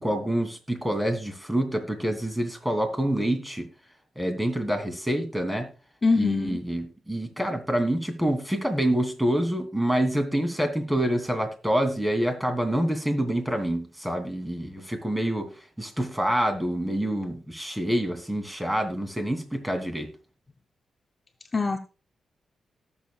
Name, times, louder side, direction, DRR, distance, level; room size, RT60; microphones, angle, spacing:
voice 1, 0.0-3.7 4.2-5.7 6.2-15.5 15.8-20.1, right 1 dB, 10° right, 2.8 m, -27 dB
voice 2, 6.0-6.6 21.5-21.8, left 4 dB, 30° left, 0.7 m, -23 dB
18.0 x 7.2 x 2.3 m
cardioid pair, 95°, 0 cm